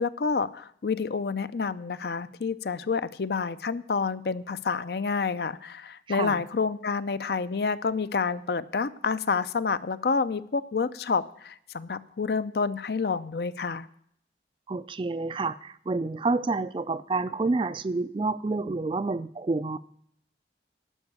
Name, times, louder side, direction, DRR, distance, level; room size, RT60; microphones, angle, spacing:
voice 1, 0.0-13.9, left 5 dB, 60° left, 14 dB, 0.5 m, -28 dB
voice 2, 6.1-6.4 14.7-19.8, right 3 dB, 30° right, 15 dB, 0.3 m, -29 dB
12.0 x 5.4 x 8.1 m, 0.67 s
head